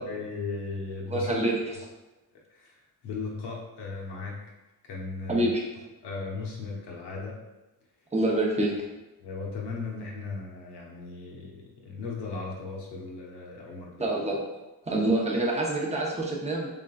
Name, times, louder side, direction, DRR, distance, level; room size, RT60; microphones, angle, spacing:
voice 1, 0.0-1.4 2.5-4.4 4.9-5.5 6.0-7.4 9.2-14.1, left 4 dB, 80° left, -2 dB, 1.0 m, -37 dB
voice 2, 1.1-1.8 5.3-5.6 8.1-8.7 14.0-14.4 14.9-16.7, right 1 dB, 15° right, -3 dB, 0.7 m, -26 dB
3.7 x 3.6 x 2.3 m, 1.0 s
cardioid pair, 125°, 40 cm